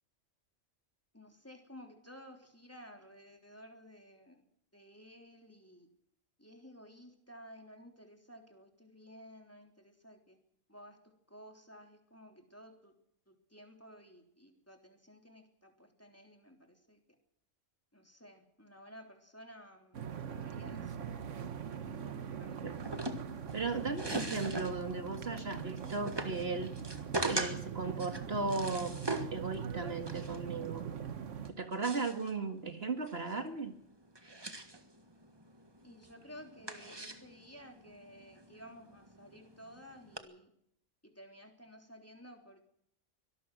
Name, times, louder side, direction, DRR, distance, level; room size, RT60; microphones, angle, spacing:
voice 1, 1.1-4.4 4.7-5.9 6.4-10.4 10.7-12.9 13.3-17.0 17.9-21.1 22.0-22.6 35.8-40.5 41.0-42.6, equal, 10° left, 4 dB, 3.4 m, -54 dB
sound 1, 19.9-31.5, right 7 dB, 70° right, 1.4 m, -42 dB
sound 2, 22.7-40.2, right 2 dB, 20° right, 1.6 m, -42 dB
voice 2, 23.5-26.8 27.2-29.0 29.3-30.9 31.6-33.8, right 3 dB, 50° right, 6 dB, 2.1 m, -36 dB
24.0 x 18.5 x 6.2 m, 0.70 s
omnidirectional pair, 1.3 m